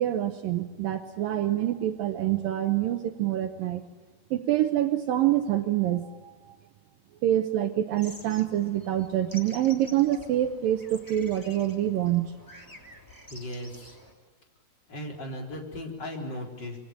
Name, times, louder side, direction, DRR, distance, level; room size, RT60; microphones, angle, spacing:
voice 1, 0.0-3.8 4.3-6.6 7.2-12.3, right 12 dB, 70° right, 7 dB, 2.5 m, -26 dB
sound 1, 8.0-14.1, left 1 dB, 5° left, 2.7 m, -49 dB
voice 2, 13.3-14.0 14.9-16.8, left 1 dB, 25° left, 1 dB, 4.4 m, -37 dB
26.0 x 24.0 x 8.8 m, 1.3 s
omnidirectional pair, 4.4 m